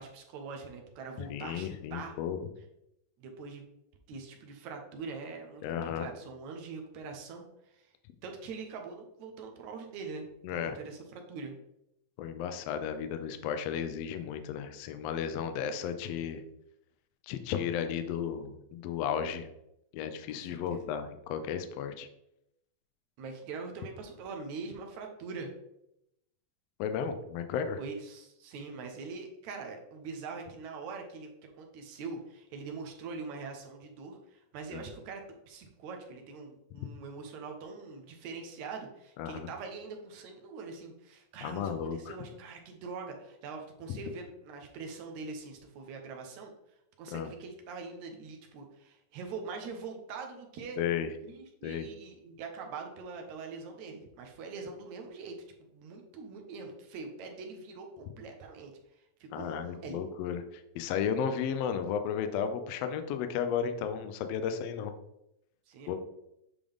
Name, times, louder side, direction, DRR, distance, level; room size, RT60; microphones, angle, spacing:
voice 1, 0.0-2.2 3.2-3.7 4.1-7.4 7.7-7.9 8.2-10.3 10.6-11.5 20.3-20.8 23.2-25.5 27.8-46.5 47.0-50.8 51.2-60.0 65.7-66.0, right 4 dB, 70° right, 3 dB, 2.1 m, -43 dB
voice 2, 1.2-2.4 5.6-6.1 10.4-10.8 12.2-16.4 17.2-19.5 19.9-22.1 26.8-27.8 34.7-34.8 39.2-39.5 41.4-42.2 43.9-44.0 47.1-47.3 50.8-51.1 51.6-51.9 59.3-64.9 65.9-66.0, left 8 dB, 90° left, 8 dB, 1.4 m, -34 dB
8.4 x 3.8 x 3.5 m, 0.84 s
omnidirectional pair, 3.6 m